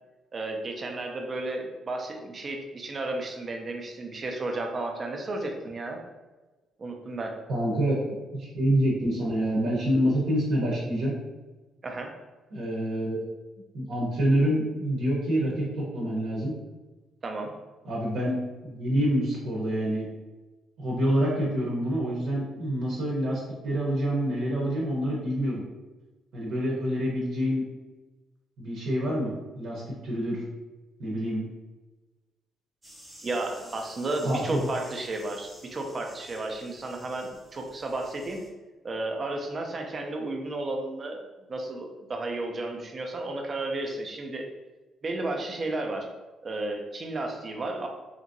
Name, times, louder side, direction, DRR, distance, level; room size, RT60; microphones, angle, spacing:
voice 1, 0.3-6.0 6.8-7.3 11.8-12.1 17.2-17.5 33.2-38.4 38.8-41.2 41.5-44.5 45.0-46.1 46.4-47.9, right 2 dB, 30° right, 2 dB, 0.4 m, -33 dB
voice 2, 7.5-11.1 12.5-13.3 13.7-16.5 17.8-18.4 18.6-20.0 20.8-25.6 26.3-27.6 28.6-30.4 31.0-31.4 34.2-34.7, equal, 65° right, -4 dB, 0.7 m, -27 dB
sound 1, 32.8-38.5, equal, 10° right, 0.8 m, -51 dB
2.9 x 2.6 x 2.6 m, 1.2 s
cardioid pair, 160°, 0 cm